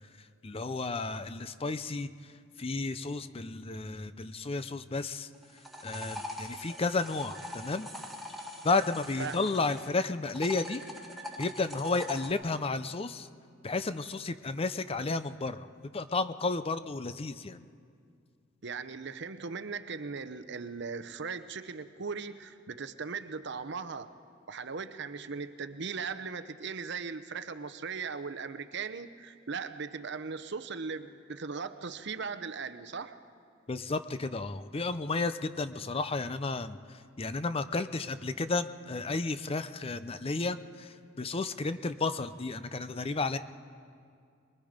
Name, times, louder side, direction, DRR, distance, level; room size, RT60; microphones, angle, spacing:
voice 1, 0.4-2.1 2.6-5.3 5.8-7.9 8.6-10.8 11.4-13.3 13.6-15.7 15.9-17.6 33.7-43.4, left 3 dB, 30° left, 12 dB, 0.5 m, -32 dB
sound 1, 5.3-9.9 10.3-12.3, equal, ahead, 1.8 m, -43 dB
voice 2, 18.6-24.1 24.5-33.2, right 5 dB, 60° right, 11 dB, 0.8 m, -38 dB
23.5 x 21.5 x 5.2 m, 2.2 s
head